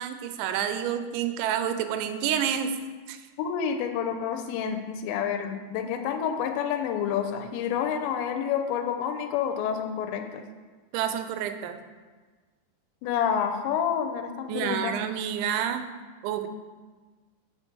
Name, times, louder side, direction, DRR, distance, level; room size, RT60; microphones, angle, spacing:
voice 1, 0.0-2.8 3.1-3.2 10.9-11.8 14.5-15.9 16.2-16.5, right 9 dB, 85° right, 8 dB, 2.9 m, -29 dB
voice 2, 3.4-10.3 13.0-15.0, left 8 dB, 80° left, 6 dB, 2.8 m, -28 dB
7.6 x 5.7 x 4.5 m, 1.4 s
omnidirectional pair, 5.2 m